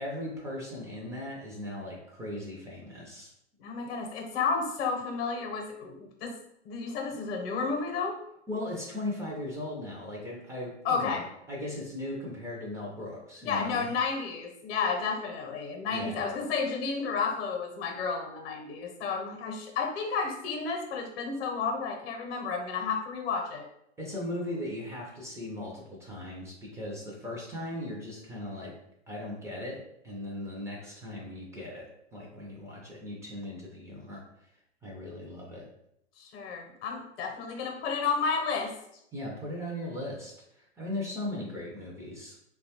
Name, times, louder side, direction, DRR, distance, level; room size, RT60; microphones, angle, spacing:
voice 1, 0.0-3.3 8.5-13.9 15.9-16.2 24.0-28.7 29.1-34.2 34.8-35.7 39.1-42.4, left 1 dB, 10° right, -4 dB, 0.4 m, -38 dB
voice 2, 3.6-6.4 6.6-8.2 10.8-11.3 13.4-23.7 36.2-38.8, left 5 dB, 60° left, 2 dB, 0.8 m, -32 dB
2.9 x 2.2 x 2.8 m, 0.76 s
hypercardioid pair, 115°, 34 cm